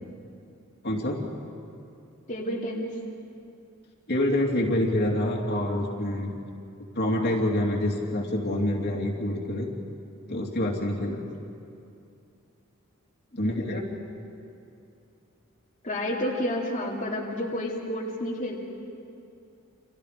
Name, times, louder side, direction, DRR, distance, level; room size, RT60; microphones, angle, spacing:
voice 1, 0.8-1.2 4.1-6.3 6.9-9.7 10.3-11.2 13.4-13.8, left 1 dB, 50° left, -1 dB, 3.1 m, -26 dB
voice 2, 2.3-2.9 13.3-13.8 15.8-18.6, left 1 dB, 35° left, -5 dB, 2.8 m, -30 dB
30.0 x 28.0 x 5.2 m, 2.6 s
head